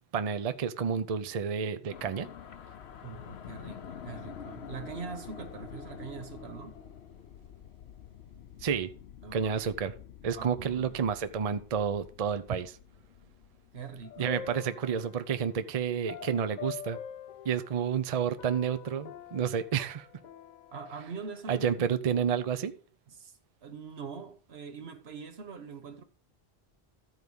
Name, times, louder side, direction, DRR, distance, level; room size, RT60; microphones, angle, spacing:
voice 1, 0.1-2.3 8.6-8.9 9.3-9.9 10.2-12.8 14.2-17.0 17.4-20.1 21.5-22.7, right 7 dB, 45° right, 0.6 m, -30 dB
sound 1, 1.9-14.5, left 8 dB, 85° left, 1.0 m, -47 dB
voice 2, 3.0-6.8 9.2-9.6 10.3-11.0 13.7-14.6 20.7-21.8 23.1-26.0, right 5 dB, 75° right, 1.3 m, -43 dB
sound 2, 14.0-15.4 16.1-18.1 18.4-21.4, left 9 dB, 55° left, 0.6 m, -45 dB
13.5 x 4.7 x 5.3 m
omnidirectional pair, 1.1 m